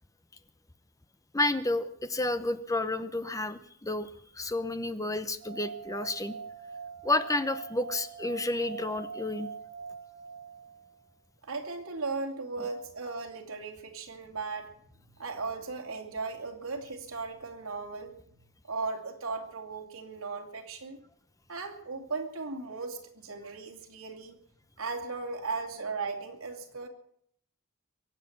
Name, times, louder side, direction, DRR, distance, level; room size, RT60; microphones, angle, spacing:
voice 1, 1.3-6.4 7.0-9.5, left 2 dB, 15° left, 12 dB, 0.8 m, -31 dB
sound 1, 5.4-10.9, right 5 dB, 60° right, 4.8 m, -43 dB
voice 2, 11.4-14.7 15.2-18.2 18.6-21.0 21.5-24.4 24.8-26.9, right 4 dB, 75° right, 3 dB, 2.8 m, -37 dB
22.5 x 8.3 x 7.3 m, 0.67 s
head